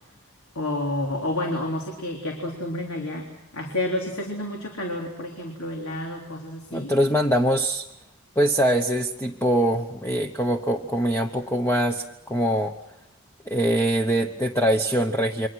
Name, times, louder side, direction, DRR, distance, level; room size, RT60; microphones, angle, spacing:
voice 1, 0.6-6.9, left 1 dB, 75° left, 0 dB, 3.6 m, -30 dB
voice 2, 6.7-7.9 8.4-12.7 13.5-15.5, equal, 10° left, 4 dB, 0.9 m, -23 dB
29.0 x 24.0 x 6.3 m, 0.87 s
head